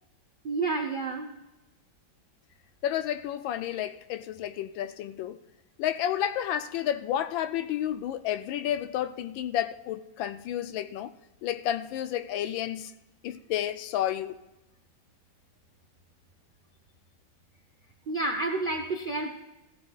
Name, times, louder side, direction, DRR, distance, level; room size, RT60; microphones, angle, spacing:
voice 1, 0.4-1.4 18.1-19.3, right 3 dB, 75° right, 0.4 m, -29 dB
voice 2, 2.8-5.4 5.8-11.1 11.4-12.9 13.2-14.4, left 11 dB, 75° left, 1.2 m, -31 dB
16.0 x 15.5 x 2.4 m
omnidirectional pair, 2.3 m